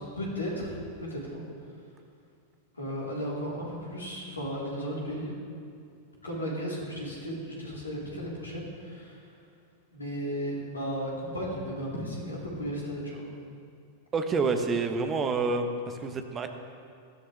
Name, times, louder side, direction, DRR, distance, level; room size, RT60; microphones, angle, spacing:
voice 1, 0.0-1.4 2.7-5.3 6.2-9.3 9.9-13.2, equal, 75° left, -5 dB, 3.7 m, -35 dB
voice 2, 14.1-16.5, right 4 dB, 25° right, 7 dB, 1.1 m, -28 dB
19.5 x 13.0 x 3.4 m, 2.4 s
figure-of-eight pair, 90°, 0 cm